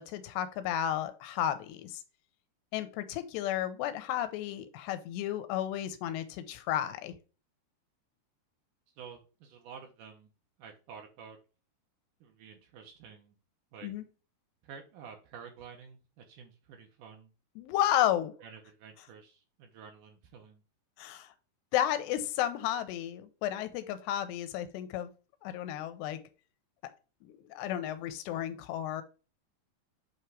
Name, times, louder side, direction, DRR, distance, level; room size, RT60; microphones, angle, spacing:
voice 1, 0.0-2.0 2.7-7.2 13.8-14.0 17.6-18.3 21.0-21.3 21.7-25.1 25.4-26.2 27.2-29.0, left 11 dB, 90° left, 10 dB, 2.7 m, -32 dB
voice 2, 9.0-10.3 10.6-11.4 12.2-13.4 13.7-13.9 14.6-17.3 18.4-20.6, right 6 dB, 80° right, 3 dB, 1.9 m, -50 dB
8.0 x 3.1 x 4.6 m, 0.33 s
omnidirectional pair, 4.8 m